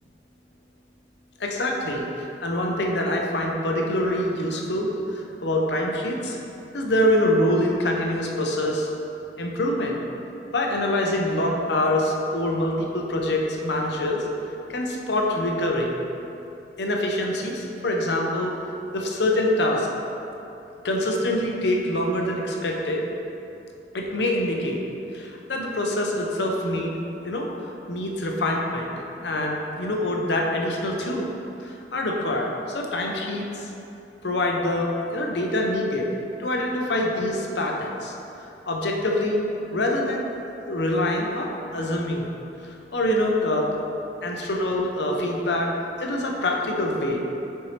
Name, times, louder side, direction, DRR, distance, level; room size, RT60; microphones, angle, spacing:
voice 1, 1.4-6.4 6.7-8.9 9.4-10.0 10.5-14.3 14.7-16.0 16.8-18.5 18.9-19.9 20.8-23.0 23.9-24.8 25.1-26.9 27.2-27.5 27.9-28.9 29.2-31.3 31.6-33.7 34.2-36.1 36.4-38.1 38.7-39.4 39.7-40.3 40.6-42.3 42.6-43.7 44.2-45.7 46.0-47.2, left 1 dB, 70° left, 0 dB, 0.7 m, -25 dB
7.0 x 4.5 x 3.3 m, 2.8 s
head